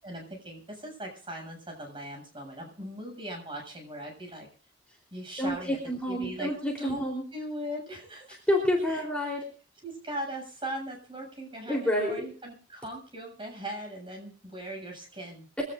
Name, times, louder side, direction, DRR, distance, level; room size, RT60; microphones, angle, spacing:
voice 1, 0.0-4.5 5.1-5.8 6.1-6.5 6.8-7.0 7.3-8.4 8.9-9.0 9.8-15.5, right 1 dB, 30° right, 2 dB, 7.3 m, -39 dB
voice 2, 5.4-7.2 8.5-9.5 11.7-12.3 15.6-15.7, left 1 dB, 5° left, -2 dB, 3.7 m, -28 dB
24.0 x 17.0 x 2.6 m, 0.39 s
head